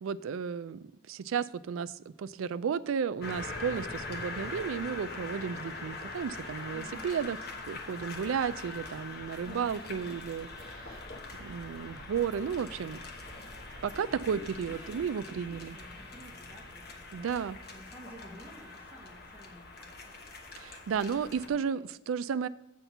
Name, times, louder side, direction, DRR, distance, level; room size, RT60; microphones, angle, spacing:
voice 1, 0.0-0.8 1.1-7.4 7.7-11.0 11.4-13.0 13.8-15.8 17.1-17.6 20.6-22.5, right 7 dB, 85° right, 16 dB, 0.4 m, -33 dB
sound 1, 3.2-21.5, left 3 dB, 50° left, 1.1 m, -43 dB
voice 2, 6.7-7.1 9.4-10.1 13.7-17.0 17.7-20.2 21.0-21.8, right 1 dB, 10° right, -4 dB, 1.5 m, -51 dB
8.1 x 4.4 x 6.7 m, 0.94 s
head